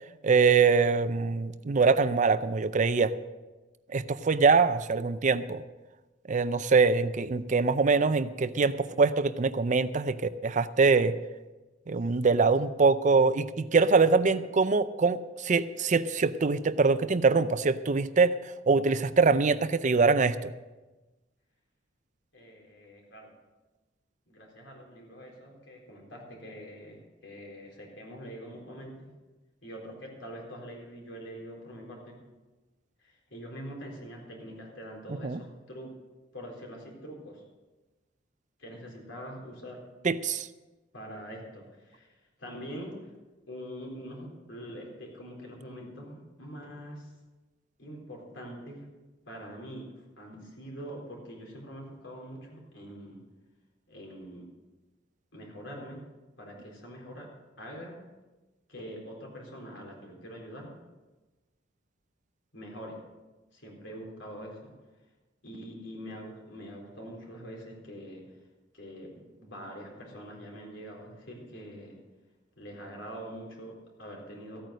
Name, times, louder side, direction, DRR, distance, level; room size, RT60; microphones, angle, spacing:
voice 1, 0.2-3.1 3.9-5.6 6.3-11.1 11.9-18.3 18.7-20.5 35.2-35.4 40.0-40.5, right 4 dB, 40° right, 14 dB, 0.5 m, -24 dB
voice 2, 22.3-23.3 24.3-29.1 29.6-32.2 33.0-35.9 36.3-37.4 38.6-39.8 40.9-42.1 42.4-43.0 43.5-47.1 47.8-48.8 49.3-49.9 50.2-53.2 53.9-54.5 55.3-56.0 56.4-57.3 57.6-58.0 58.7-60.7 62.5-63.0 63.5-64.7 65.4-68.2 68.7-72.0 72.6-74.6, equal, 75° left, 0 dB, 4.0 m, -44 dB
14.5 x 9.1 x 6.4 m, 1.2 s
head